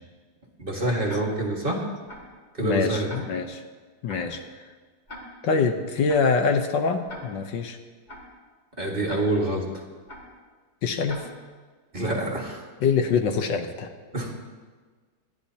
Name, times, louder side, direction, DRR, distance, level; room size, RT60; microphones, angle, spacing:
voice 1, 0.6-1.9 2.5-3.1 8.8-9.8 11.9-12.6 14.1-14.3, right 1 dB, 30° right, 0 dB, 1.8 m, -26 dB
Tick-tock, 1.1-1.2 2.1-2.2 3.1-3.2 4.1-4.2 5.1-5.2 6.1-6.2 7.1-7.2 8.1-8.2 9.1-9.2 10.1-10.2 11.1-11.2 12.1-12.2, left 1 dB, 35° left, 3.0 m, -40 dB
voice 2, 2.6-3.6 4.0-4.4 5.4-7.8 10.8-11.3 12.8-13.9, left 5 dB, 75° left, 6 dB, 1.6 m, -24 dB
27.0 x 10.5 x 2.8 m, 1.5 s
omnidirectional pair, 2.1 m